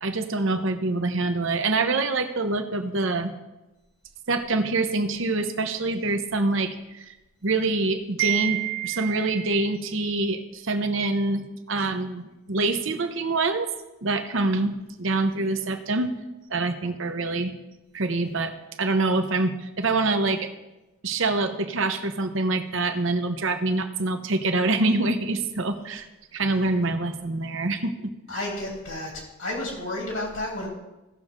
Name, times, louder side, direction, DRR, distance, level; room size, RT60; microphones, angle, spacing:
voice 1, 0.0-3.3 4.3-7.1 7.4-13.7 14.0-16.1 16.5-17.5 17.9-18.5 18.8-20.5 21.0-28.1, right 3 dB, 70° right, 8 dB, 0.9 m, -25 dB
voice 2, 28.3-29.1 29.4-30.7, left 1 dB, 80° left, -2 dB, 3.1 m, -31 dB
17.0 x 6.6 x 3.7 m, 1.0 s
head